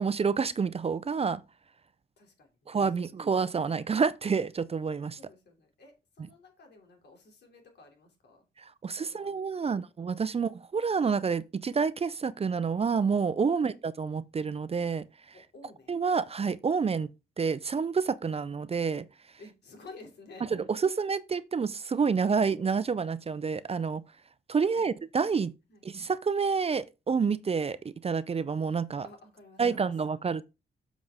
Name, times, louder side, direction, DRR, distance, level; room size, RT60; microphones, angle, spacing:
voice 1, 0.0-1.4 2.7-5.2 8.8-15.1 15.9-17.1 17.4-19.0 20.7-24.0 24.5-25.5 25.8-29.1 29.6-30.4, right 5 dB, 35° right, 0.5 m, -28 dB
voice 2, 2.2-3.1 5.2-8.5 9.0-9.9 10.3-10.5 13.5-13.7 15.3-16.0 19.4-20.8 24.7-24.9 25.7-25.8 29.0-29.8 30.1-30.3, left 3 dB, 70° left, 3.0 m, -53 dB
7.6 x 6.1 x 3.6 m
cardioid pair, 95°, 18 cm